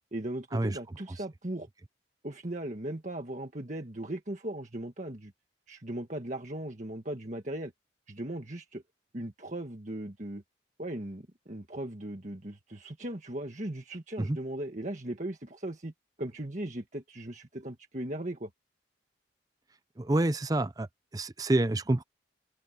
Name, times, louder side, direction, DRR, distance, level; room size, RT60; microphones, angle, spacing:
voice 1, 0.1-1.7 2.2-5.3 5.7-7.7 8.1-8.8 9.1-10.4 10.8-15.9 16.2-18.5, right 1 dB, 40° right, 1.7 m, -38 dB
voice 2, 20.0-20.9 21.1-22.0, right 2 dB, 20° right, 0.5 m, -27 dB
head